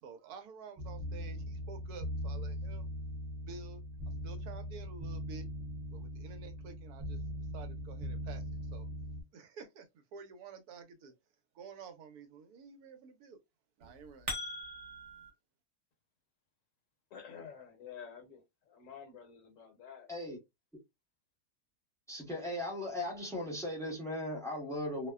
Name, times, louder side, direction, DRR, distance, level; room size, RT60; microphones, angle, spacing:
voice 1, 0.0-2.9 3.5-3.8 4.2-5.5 5.9-7.2 7.5-8.4 8.7-8.9 9.3-11.1 11.5-13.4 13.8-14.3, right 5 dB, 85° right, 1.2 m, -50 dB
sound 1, 0.8-9.2, equal, 30° right, 0.8 m, -40 dB
sound 2, 13.8-15.3, equal, 55° right, 1.2 m, -40 dB
voice 2, 17.1-20.1, left 7 dB, 65° left, 1.0 m, -50 dB
voice 3, 22.1-25.1, left 1 dB, 5° left, 0.6 m, -37 dB
2.7 x 2.1 x 2.2 m
omnidirectional pair, 1.6 m